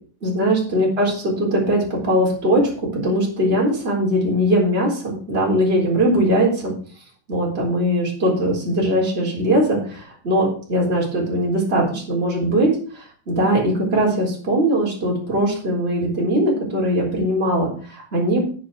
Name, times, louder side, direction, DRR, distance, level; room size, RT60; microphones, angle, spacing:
voice 1, 0.2-6.7 7.3-18.4, right 1 dB, 15° right, -3 dB, 3.9 m, -20 dB
9.3 x 7.5 x 5.9 m, 0.43 s
omnidirectional pair, 4.2 m